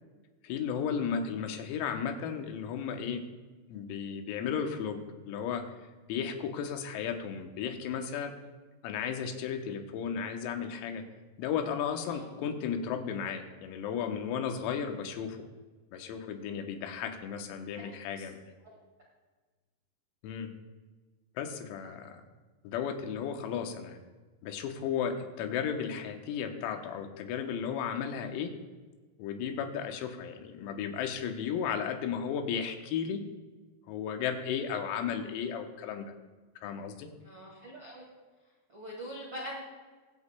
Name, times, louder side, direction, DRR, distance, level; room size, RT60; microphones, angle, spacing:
voice 1, 0.4-3.2 3.7-5.7 6.1-8.3 8.8-11.0 11.4-15.5 15.9-18.5 20.2-20.5 21.4-22.2 22.7-24.0 24.4-28.5 29.2-33.3 33.9-36.1 36.6-37.1, left 7 dB, 90° left, 5 dB, 3.7 m, -34 dB
voice 2, 37.2-38.0 38.7-39.6, equal, 75° right, -4 dB, 1.1 m, -42 dB
24.0 x 8.3 x 2.2 m, 1.3 s
omnidirectional pair, 6.0 m